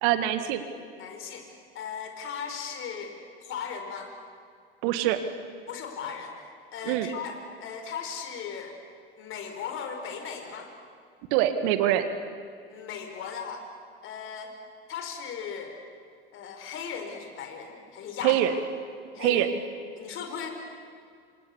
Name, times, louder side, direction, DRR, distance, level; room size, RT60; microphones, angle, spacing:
voice 1, 0.0-0.6 4.8-5.2 6.9-7.1 11.3-12.1 18.2-18.5 19.2-19.5, right 13 dB, 55° right, 9 dB, 1.9 m, -24 dB
voice 2, 1.0-1.5 1.7-3.1 3.5-4.1 5.7-6.3 6.7-8.7 9.2-10.7 12.7-13.6 14.0-14.5 14.9-15.8 16.3-18.4 19.1-19.4 20.0-20.5, left 7 dB, 45° left, 5 dB, 4.9 m, -37 dB
28.0 x 26.0 x 7.1 m, 2.2 s
figure-of-eight pair, 75°, 30 cm